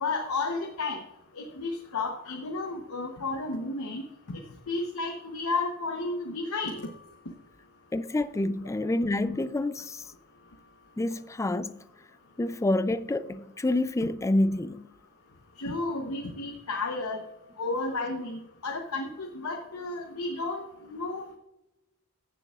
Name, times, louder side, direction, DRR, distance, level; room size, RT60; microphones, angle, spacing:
voice 1, 0.0-1.0 1.4-4.0 4.3-6.9 15.6-17.3 17.6-21.4, left 3 dB, 75° left, 0.9 m, -32 dB
voice 2, 7.9-10.1 11.0-11.8 12.4-14.9, left 2 dB, 15° left, 0.3 m, -28 dB
15.0 x 6.9 x 2.4 m
head